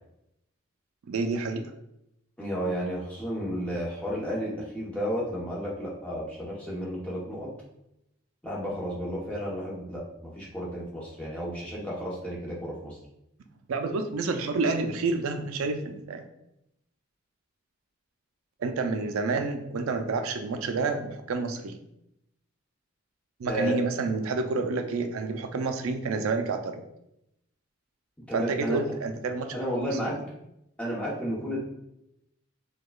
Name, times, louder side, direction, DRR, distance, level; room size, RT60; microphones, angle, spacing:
voice 1, 1.1-1.6 13.7-16.2 18.6-21.8 23.4-26.8 28.3-30.1, right 3 dB, 90° right, 7 dB, 0.4 m, -29 dB
voice 2, 2.4-7.5 8.4-13.0 23.5-23.8 28.3-28.8 29.5-30.2 30.8-31.6, equal, 5° left, -6 dB, 0.9 m, -32 dB
4.7 x 2.3 x 2.3 m, 0.81 s
head